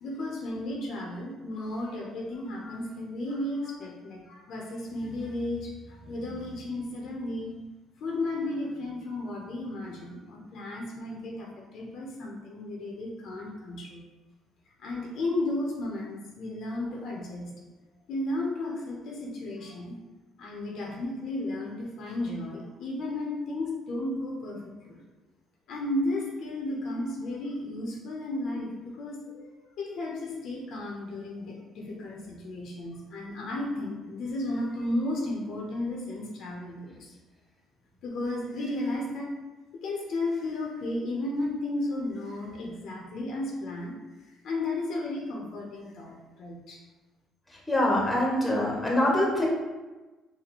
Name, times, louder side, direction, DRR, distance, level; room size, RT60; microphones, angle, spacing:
voice 1, 0.0-7.5 8.0-14.0 14.8-17.5 18.1-20.0 20.4-25.0 25.7-37.1 38.0-39.3 39.7-44.0 44.4-46.8, left 2 dB, 65° left, -2 dB, 0.8 m, -34 dB
voice 2, 47.7-49.5, left 1 dB, 10° left, -2 dB, 1.1 m, -24 dB
4.1 x 2.7 x 3.0 m, 1.2 s
cardioid pair, 90°, 0 cm